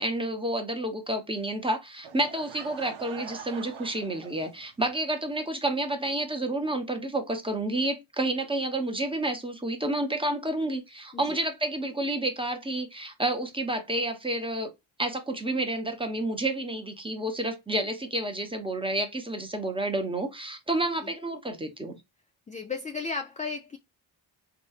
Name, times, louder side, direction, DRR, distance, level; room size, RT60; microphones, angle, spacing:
voice 1, 0.0-14.7 15.0-22.0, right 1 dB, 10° right, 0.8 m, -30 dB
Laughter / Crowd, 2.0-4.9, right 8 dB, 70° right, 0.7 m, -44 dB
voice 2, 22.5-23.8, left 4 dB, 20° left, 0.3 m, -34 dB
3.0 x 2.8 x 2.3 m
cardioid pair, 65°, 50 cm